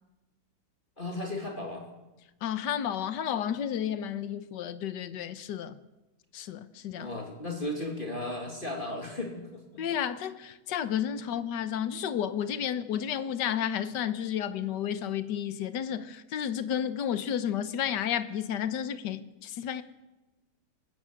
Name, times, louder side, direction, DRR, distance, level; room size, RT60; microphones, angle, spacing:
voice 1, 1.0-1.9 7.0-9.8, left 2 dB, 30° left, 2.9 m, -35 dB
voice 2, 2.4-5.8 6.3-7.1 9.8-19.8, left 9 dB, 80° left, 1.6 m, -32 dB
24.5 x 14.0 x 8.8 m
omnidirectional pair, 1.8 m